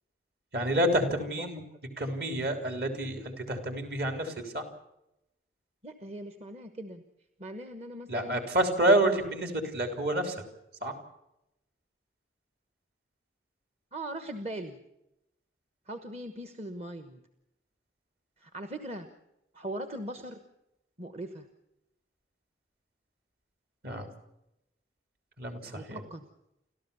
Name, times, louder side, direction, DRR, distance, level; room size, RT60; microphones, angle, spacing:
voice 1, 0.5-1.6 2.0-4.6 8.1-10.4 10.8-10.9 23.8-24.1 25.4-26.0, right 1 dB, 55° right, 6 dB, 3.5 m, -28 dB
voice 2, 5.8-7.0 7.4-8.4 13.9-14.8 15.9-17.2 18.4-19.1 19.5-20.4 21.0-21.5 25.6-26.3, right 1 dB, 35° right, 8 dB, 1.2 m, -40 dB
29.5 x 13.5 x 7.0 m, 0.87 s
head